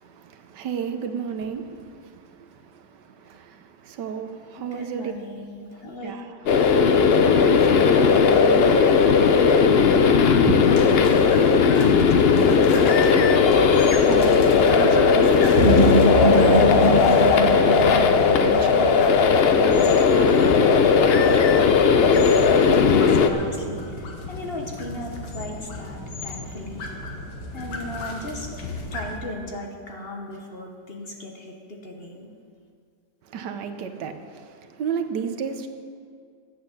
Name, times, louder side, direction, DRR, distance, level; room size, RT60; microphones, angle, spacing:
voice 1, 0.0-5.1 5.8-7.0 7.2-8.9 10.4-10.6 13.4-20.5 33.2-35.7, right 6 dB, 85° right, 7 dB, 1.5 m, -33 dB
voice 2, 4.6-6.2 11.0-11.8 12.1-12.6 21.9-26.8 27.5-32.3, left 1 dB, 40° left, 1 dB, 1.3 m, -37 dB
sound 1, 6.5-23.3, left 5 dB, 60° left, 0.6 m, -17 dB
sound 2, 10.2-29.2, left 2 dB, 85° left, 2.0 m, -35 dB
sound 3, 15.6-19.1, equal, 50° right, 1.8 m, -22 dB
11.0 x 8.6 x 7.2 m, 2.2 s
omnidirectional pair, 1.8 m